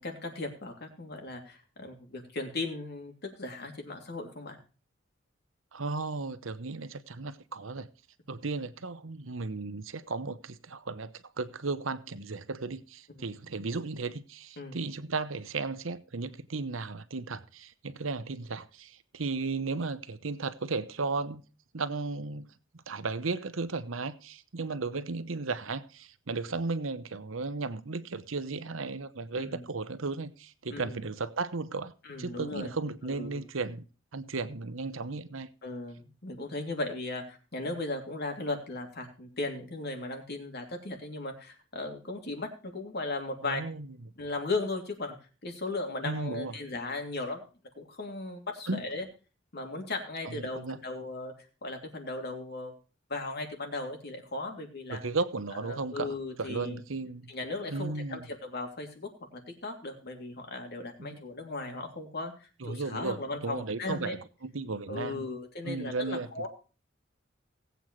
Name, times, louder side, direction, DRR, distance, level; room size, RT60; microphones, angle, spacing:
voice 1, 0.0-3.1 3.4-4.6 13.1-13.2 14.6-14.8 29.4-29.6 30.7-31.0 32.0-32.7 33.0-33.4 35.6-43.6 44.2-45.1 45.4-47.4 47.8-49.0 49.5-51.3 51.6-52.7 53.1-55.0 55.5-56.8 57.3-59.1 59.5-64.2 64.9-66.5, left 2 dB, 55° left, 2.9 m, -37 dB
voice 2, 5.7-7.9 8.3-21.4 21.7-22.5 22.9-31.9 32.2-33.8 34.1-35.5 43.4-43.9 46.0-46.5 48.7-48.8 50.3-50.8 54.9-57.3 57.7-58.3 61.0-61.2 62.6-65.2 65.6-66.5, right 3 dB, 80° right, 0.9 m, -35 dB
19.0 x 8.3 x 3.2 m
head